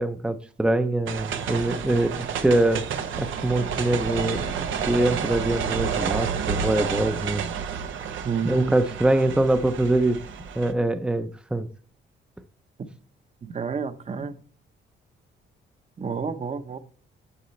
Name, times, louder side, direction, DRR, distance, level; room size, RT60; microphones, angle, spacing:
voice 1, 0.0-2.8 3.2-4.5 4.9-7.4 8.4-10.2 10.6-11.7, right 1 dB, 5° right, 0.6 m, -23 dB
sound 1, 1.1-10.7, right 7 dB, 80° right, 1.0 m, -30 dB
voice 2, 8.2-8.7 13.4-14.3 16.0-16.8, right 6 dB, 35° right, 0.9 m, -29 dB
9.7 x 6.7 x 3.2 m
cardioid pair, 90°, 20 cm